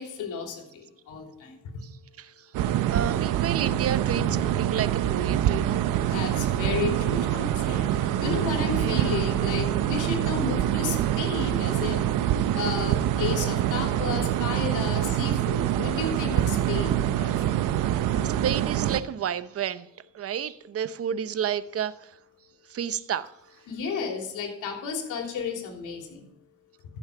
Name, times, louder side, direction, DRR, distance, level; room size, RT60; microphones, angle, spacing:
voice 1, 0.0-1.6 6.1-17.4 23.7-26.2, left 5 dB, 85° left, 3.3 m, -33 dB
voice 2, 1.8-2.5 2.9-5.9 8.8-9.3 17.3-17.4 18.2-19.9 20.1-22.2 22.7-23.6, right 9 dB, 50° right, 0.8 m, -31 dB
sound 1, 2.5-19.0, right 11 dB, 90° right, 0.7 m, -25 dB
14.5 x 7.2 x 4.9 m
cardioid pair, 90°, 30 cm